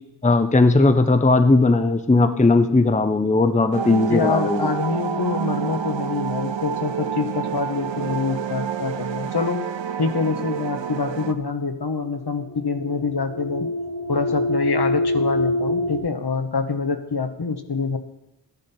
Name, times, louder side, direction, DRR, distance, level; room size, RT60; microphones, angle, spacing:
voice 1, 0.2-4.7, left 3 dB, 15° left, 8 dB, 0.7 m, -17 dB
sound 1, 3.7-11.3, right 8 dB, 85° right, 0.8 m, -28 dB
voice 2, 4.1-9.6 10.0-13.7 14.1-18.0, left 4 dB, 60° left, 7 dB, 1.3 m, -25 dB
sound 2, 12.0-16.0, left 1 dB, 80° left, 3.5 m, -25 dB
13.0 x 10.5 x 4.3 m, 0.87 s
wide cardioid pair, 65°, 44 cm